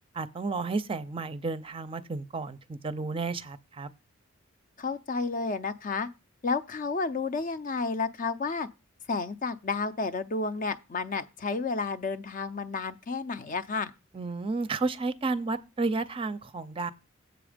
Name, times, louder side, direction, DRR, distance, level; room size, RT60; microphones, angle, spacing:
voice 1, 0.2-3.9 14.1-16.9, right 3 dB, 25° right, 0.5 m, -32 dB
voice 2, 4.8-6.1 6.4-8.7 9.1-13.9, left 4 dB, 40° left, 0.5 m, -31 dB
7.8 x 6.0 x 5.0 m
head